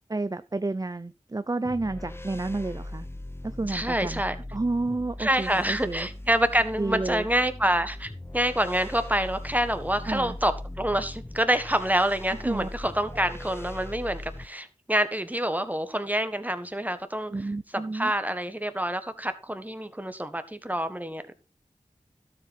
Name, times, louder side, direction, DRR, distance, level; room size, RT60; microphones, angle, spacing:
voice 1, 0.1-3.1 3.4-4.2 4.5-6.1 6.8-7.2 10.1-10.4 12.4-12.7 13.2-13.3 17.3-18.1, right 2 dB, 30° right, 0.5 m, -30 dB
sound 1, 1.6-14.5, left 1 dB, 20° left, 0.9 m, -40 dB
voice 2, 3.7-4.3 5.2-17.3 17.7-21.3, right 1 dB, 10° right, 1.6 m, -27 dB
12.5 x 7.5 x 4.3 m
wide cardioid pair, 40°, 13 cm